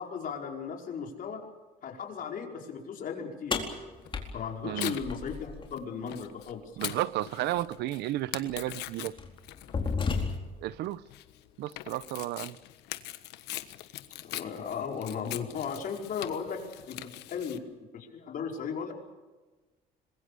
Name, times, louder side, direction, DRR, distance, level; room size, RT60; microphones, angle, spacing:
voice 1, 0.0-1.4 1.8-3.6 4.3-6.6 14.2-17.6 17.9-18.9, left 6 dB, 55° left, 2 dB, 5.0 m, -36 dB
sound 1, 3.5-5.7 7.6-7.7 8.5-8.7 9.2-10.7, left 4 dB, 30° left, 4.3 m, -32 dB
Tearing, 4.0-17.6, left 15 dB, 85° left, 1.4 m, -42 dB
voice 2, 4.6-5.0 6.8-9.1 10.6-11.0 11.6-12.6, right 15 dB, 80° right, 18 dB, 0.8 m, -33 dB
26.0 x 22.0 x 6.9 m, 1.3 s
cardioid pair, 110°, 17 cm